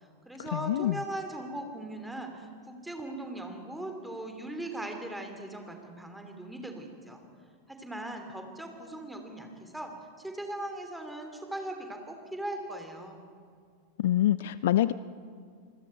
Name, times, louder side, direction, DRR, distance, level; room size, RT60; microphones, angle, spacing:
voice 1, 0.0-7.2 7.7-9.9 10.2-13.2, right 1 dB, 5° right, 4 dB, 2.9 m, -39 dB
voice 2, 0.5-1.0 14.0-14.9, left 13 dB, 55° left, 18 dB, 0.4 m, -25 dB
28.0 x 20.5 x 4.5 m, 2.2 s
figure-of-eight pair, 90°, 0 cm